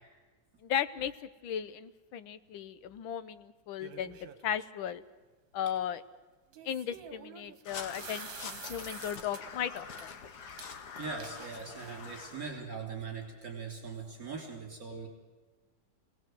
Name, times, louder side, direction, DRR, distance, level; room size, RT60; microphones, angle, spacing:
voice 1, 0.6-1.1 1.4-5.0 5.5-6.0 6.7-10.1, left 9 dB, 90° left, 13 dB, 1.7 m, -36 dB
sound 1, 3.8-4.6 6.5-9.4 9.8-10.0 10.6-10.7 11.0-12.1, right 7 dB, 70° right, 2.0 m, -48 dB
Crow, 7.6-12.6, left 5 dB, 60° left, 1.6 m, -45 dB
voice 2, 11.0-15.1, right 5 dB, 45° right, 1 dB, 3.7 m, -41 dB
26.5 x 18.5 x 7.7 m, 1.3 s
omnidirectional pair, 2.1 m